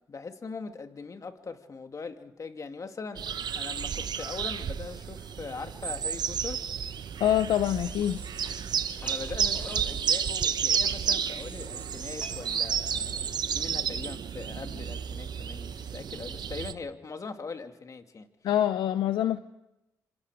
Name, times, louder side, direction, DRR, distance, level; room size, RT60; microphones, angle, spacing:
voice 1, 0.1-3.3 3.5-6.7 9.0-18.3, left 4 dB, 45° left, 6 dB, 2.2 m, -41 dB
sound 1, 3.2-16.7, right 7 dB, 65° right, 1.1 m, -31 dB
voice 2, 7.2-8.2 18.4-19.4, left 11 dB, 85° left, 11 dB, 0.7 m, -25 dB
sound 2, 7.6-13.8, equal, 20° left, 7.8 m, -50 dB
27.0 x 26.5 x 4.9 m, 0.92 s
cardioid pair, 75°, 8 cm